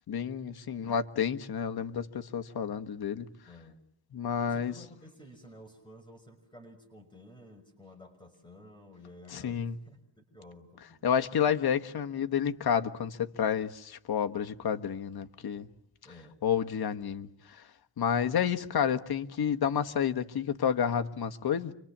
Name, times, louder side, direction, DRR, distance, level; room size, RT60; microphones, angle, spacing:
voice 1, 0.1-3.3 4.1-4.7 9.3-9.8 11.0-15.7 16.4-17.3 18.0-21.7, left 8 dB, 55° left, 1.5 m, -30 dB
voice 2, 3.5-3.8 4.4-11.1 16.0-16.4, left 1 dB, 10° left, 5.9 m, -53 dB
30.0 x 25.5 x 7.4 m
cardioid pair, 105°, 44 cm